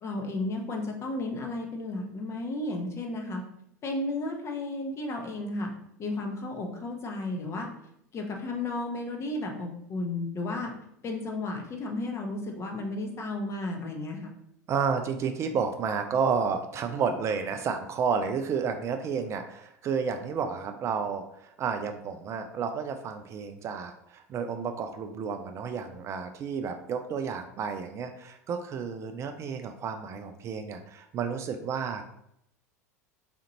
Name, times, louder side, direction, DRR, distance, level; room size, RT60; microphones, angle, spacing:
voice 1, 0.0-3.4 3.8-5.7 6.0-7.7 8.1-10.7 11.0-14.3, left 2 dB, 30° left, 2 dB, 0.8 m, -33 dB
voice 2, 14.7-32.0, right 6 dB, 35° right, 6 dB, 0.3 m, -31 dB
4.2 x 2.5 x 2.9 m, 0.75 s
figure-of-eight pair, 80°, 9 cm